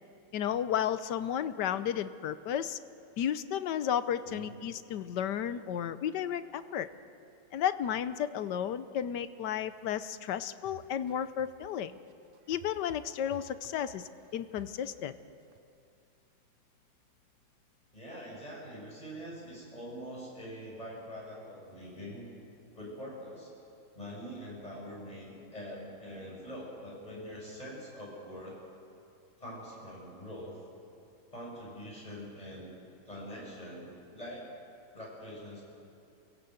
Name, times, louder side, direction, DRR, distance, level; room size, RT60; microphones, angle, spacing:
voice 1, 0.3-2.8 3.2-6.9 7.5-12.0 12.5-14.0 14.3-15.2, left 9 dB, 75° left, 13 dB, 1.3 m, -33 dB
sound 1, 10.2-15.6, right 7 dB, 55° right, 0.6 m, -55 dB
voice 2, 17.9-22.3 22.7-23.5 23.9-28.5 29.4-30.6 31.3-32.7 33.1-34.5 34.9-35.6, equal, 20° left, -5 dB, 7.9 m, -44 dB
27.5 x 16.5 x 8.0 m, 2.6 s
omnidirectional pair, 2.0 m